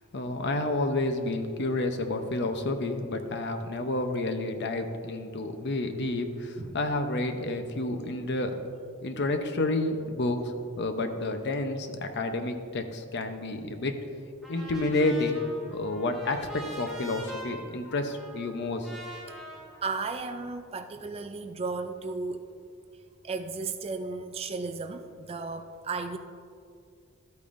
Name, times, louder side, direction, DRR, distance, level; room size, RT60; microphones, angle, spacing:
voice 1, 0.1-8.5 9.0-14.0 14.5-18.9, left 2 dB, 50° left, 6 dB, 0.7 m, -30 dB
Trumpet, 14.4-20.6, right 1 dB, ahead, 1.5 m, -45 dB
voice 2, 19.8-22.5 23.2-26.2, right 4 dB, 25° right, 7 dB, 0.3 m, -34 dB
13.0 x 8.5 x 2.6 m, 2.3 s
head